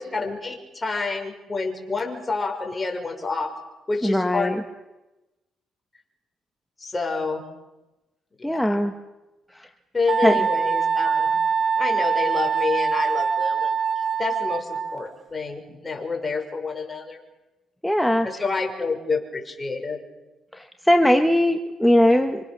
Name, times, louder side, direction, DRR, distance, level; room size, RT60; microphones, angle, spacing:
voice 1, 0.0-3.5 3.9-4.5 6.8-7.4 8.4-8.8 9.9-11.4 11.8-17.2 18.2-20.0, left 4 dB, 20° left, 3 dB, 6.2 m, -28 dB
voice 2, 4.0-4.6 8.4-8.9 9.5-9.7 10.2-10.4 17.8-18.3 20.5-22.4, left 1 dB, 5° left, 5 dB, 1.7 m, -20 dB
Wind instrument woodwind instrument, 10.1-15.1, right 6 dB, 50° right, 2.0 m, -23 dB
27.0 x 25.5 x 7.0 m, 1.0 s
cardioid pair, 90°, 0 cm